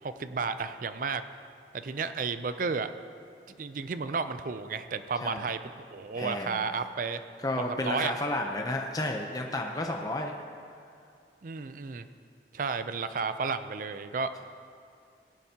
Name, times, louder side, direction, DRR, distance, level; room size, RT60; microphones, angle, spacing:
voice 1, 0.0-1.2 1.7-2.9 3.5-5.6 5.9-7.2 7.6-8.1 11.4-12.1 12.5-14.3, right 5 dB, 50° right, 11 dB, 0.4 m, -32 dB
voice 2, 6.1-6.7 7.4-10.3, left 1 dB, 20° left, 2 dB, 0.6 m, -32 dB
17.5 x 11.0 x 2.9 m, 2.4 s
head